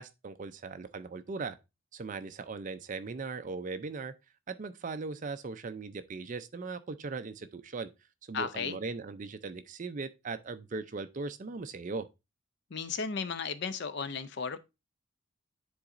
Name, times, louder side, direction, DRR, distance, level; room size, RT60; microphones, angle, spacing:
voice 1, 0.0-1.6 1.9-4.1 4.5-7.9 8.3-12.1, right 4 dB, 35° right, 0.4 m, -39 dB
voice 2, 8.3-8.8 12.7-14.6, left 5 dB, 50° left, 0.5 m, -34 dB
9.9 x 3.9 x 2.5 m
head